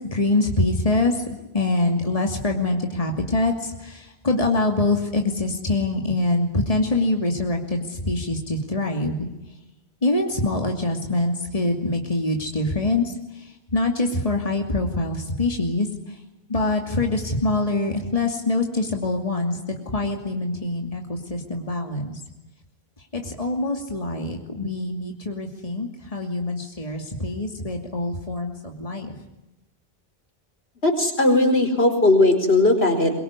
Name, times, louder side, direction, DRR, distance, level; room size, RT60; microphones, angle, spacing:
voice 1, 0.1-1.2 1.5-9.3 10.0-13.1 13.4-15.9 16.5-19.6 19.9-22.2 23.1-29.1, left 2 dB, 35° left, 2 dB, 2.8 m, -24 dB
voice 2, 30.8-33.1, left 2 dB, 70° left, 6 dB, 5.0 m, -18 dB
24.5 x 22.5 x 9.8 m, 0.97 s
omnidirectional pair, 1.1 m